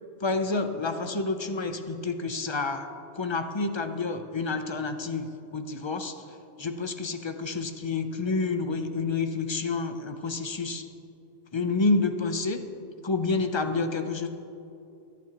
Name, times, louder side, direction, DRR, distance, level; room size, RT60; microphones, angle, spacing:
voice 1, 0.2-2.9 3.1-6.2 6.6-10.9 11.5-12.6 13.0-14.3, left 3 dB, 30° left, 7 dB, 0.6 m, -29 dB
24.5 x 9.1 x 3.0 m, 2.7 s
omnidirectional pair, 1.2 m